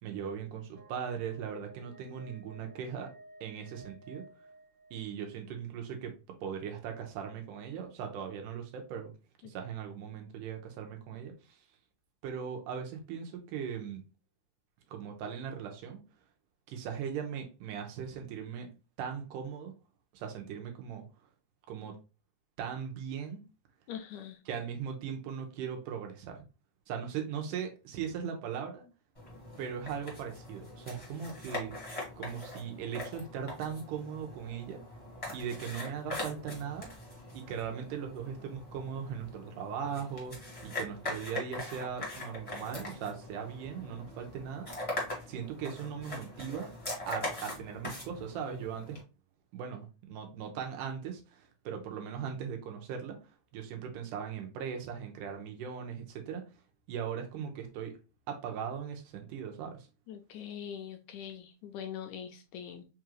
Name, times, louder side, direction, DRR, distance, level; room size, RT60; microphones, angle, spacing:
voice 1, 0.0-3.1 3.4-4.2 4.9-9.1 9.4-11.7 12.2-14.0 14.9-16.0 16.7-18.7 19.0-19.7 20.1-21.1 21.7-22.0 22.6-23.4 24.5-26.4 26.9-28.9 29.6-31.7 32.2-34.8 35.3-36.9 37.3-44.7 45.3-46.7 47.1-49.0 49.5-56.6 56.9-58.0 58.3-59.9, right 7 dB, 85° right, 3 dB, 2.3 m, -39 dB
sound 1, 0.7-5.4, right 2 dB, 60° right, 1.8 m, -55 dB
voice 2, 23.9-24.4 60.1-62.8, left 8 dB, 80° left, 5 dB, 1.7 m, -42 dB
sound 2, 29.1-49.0, left 1 dB, 30° left, 0.6 m, -42 dB
5.4 x 2.4 x 3.1 m, 0.30 s
omnidirectional pair, 3.7 m